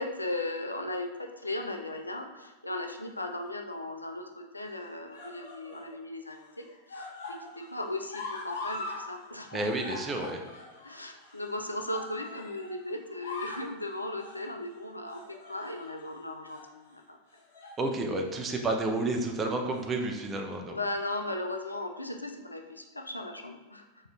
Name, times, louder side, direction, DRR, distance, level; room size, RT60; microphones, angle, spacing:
voice 1, 0.0-9.6 10.8-15.2 15.5-17.2 20.7-23.8, left 2 dB, 85° left, 3 dB, 0.3 m, -37 dB
sound 1, 3.2-3.7 4.6-5.9 6.3-9.0 9.3-12.7 13.1-13.7 14.2-14.5 15.0-16.1 16.4-16.7 17.3-17.8 18.2-18.4 19.5-20.1 21.0-21.1, left 3 dB, 60° left, 0.9 m, -42 dB
voice 2, 9.5-10.4 17.8-20.8, right 2 dB, 20° right, 3 dB, 0.4 m, -30 dB
4.2 x 2.4 x 2.3 m, 1.2 s
figure-of-eight pair, 90°, 0 cm